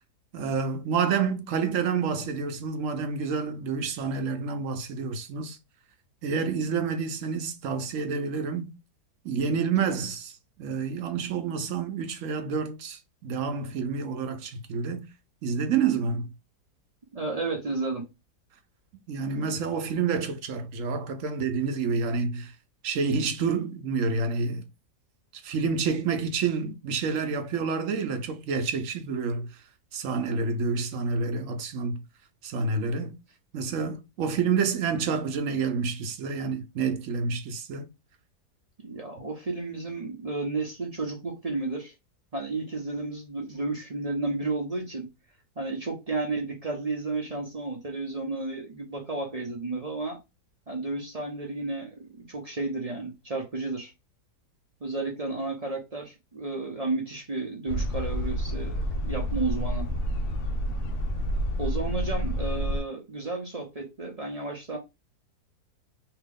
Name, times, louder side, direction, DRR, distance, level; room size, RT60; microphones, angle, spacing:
voice 1, 0.3-5.6 6.2-8.7 9.2-15.1 15.4-16.3 19.1-22.5 22.8-24.7 25.4-29.5 29.9-32.0 32.4-33.2 33.5-37.9, right 5 dB, 60° right, 0.9 m, -28 dB
voice 2, 17.1-18.1 38.8-41.9 42.3-45.1 45.6-50.2 50.7-53.9 54.8-59.9 61.6-64.8, right 3 dB, 40° right, 0.5 m, -32 dB
sound 1, 57.7-62.8, equal, 70° left, 0.7 m, -29 dB
2.9 x 2.8 x 3.5 m
omnidirectional pair, 1.7 m